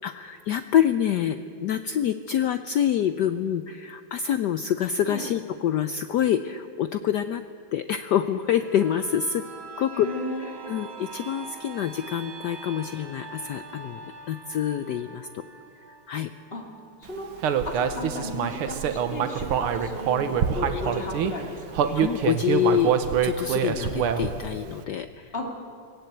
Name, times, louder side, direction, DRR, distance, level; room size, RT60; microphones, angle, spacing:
voice 1, 0.0-7.4 7.7-9.4 9.8-10.1 10.7-15.4 16.1-16.3 20.7-20.8 22.0-22.9 23.2-25.3, left 10 dB, 75° left, 10 dB, 0.9 m, -26 dB
sound 1, 8.4-18.0 18.4-18.5, right 4 dB, 55° right, 2.0 m, -43 dB
voice 2, 9.9-10.8 16.5-16.6 17.0-17.3 17.6-22.0 25.3-25.5, left 1 dB, 25° left, 1 dB, 2.6 m, -34 dB
Human voice, 17.4-21.3 21.7-24.5, right 8 dB, 80° right, 1.9 m, -25 dB
18.5 x 17.5 x 8.0 m, 2.4 s
omnidirectional pair, 2.4 m